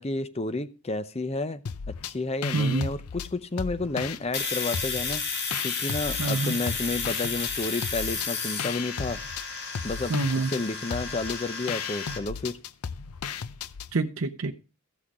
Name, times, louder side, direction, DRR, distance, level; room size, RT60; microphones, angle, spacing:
voice 1, 0.0-1.6 1.9-9.2 9.6-10.2 10.5-12.6, left 2 dB, 30° left, 0.7 m, -31 dB
sound 1, 1.7-2.1 2.4-4.5 4.7-6.4 6.7-13.9, left 6 dB, 85° left, 0.6 m, -35 dB
voice 2, 2.5-2.9 6.2-6.6 10.1-10.5 13.9-14.5, right 3 dB, 65° right, 0.7 m, -26 dB
Domestic sounds home sounds, 4.3-12.2, left 5 dB, 50° left, 2.4 m, -32 dB
15.0 x 6.3 x 4.7 m
head